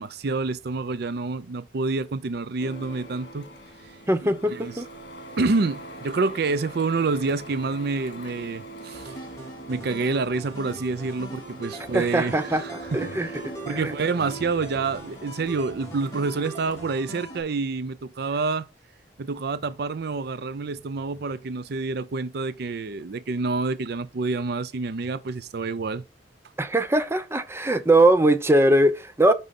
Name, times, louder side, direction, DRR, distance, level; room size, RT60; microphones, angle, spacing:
voice 1, 0.0-3.5 4.2-4.8 5.4-9.1 9.7-18.7 19.2-26.0, right 3 dB, 65° right, 0.5 m, -28 dB
Printer, 2.6-16.8, right 2 dB, 65° left, 2.3 m, -42 dB
voice 2, 4.1-4.9 11.9-12.6 12.9-13.3 13.7-13.9 26.6-29.3, right 1 dB, 15° right, 0.7 m, -20 dB
sound 1, 8.9-17.4, right 1 dB, 20° left, 3.4 m, -41 dB
6.1 x 5.4 x 5.3 m
head